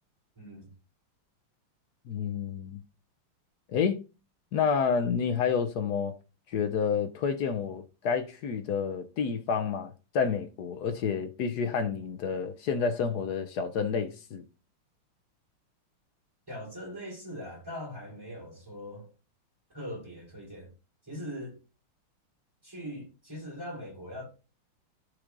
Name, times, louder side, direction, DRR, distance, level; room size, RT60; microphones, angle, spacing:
voice 1, 0.4-0.7 16.5-19.1 19.7-20.7 21.0-21.6 22.6-24.2, equal, 10° right, 3.9 m, -41 dB
voice 2, 2.1-2.8 3.7-4.0 4.5-6.1 6.5-14.4, left 6 dB, 65° left, 1.0 m, -29 dB
14.5 x 4.9 x 2.6 m
omnidirectional pair, 2.4 m